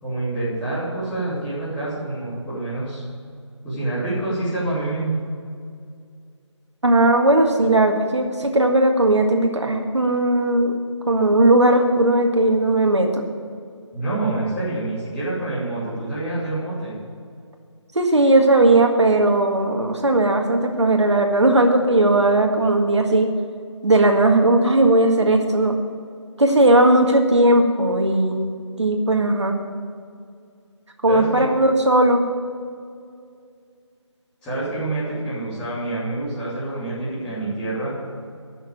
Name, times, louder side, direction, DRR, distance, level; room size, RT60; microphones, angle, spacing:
voice 1, 0.0-3.0 3.6-5.1 13.9-16.9 31.1-31.5 34.4-37.9, right 2 dB, 5° left, -12 dB, 2.9 m, -27 dB
voice 2, 6.8-10.7 11.1-13.2 18.0-23.3 23.8-25.8 26.4-28.5 28.8-29.6 31.0-32.2, right 1 dB, 65° right, 3 dB, 1.8 m, -17 dB
10.0 x 6.9 x 9.0 m, 2.3 s
figure-of-eight pair, 160°, 16 cm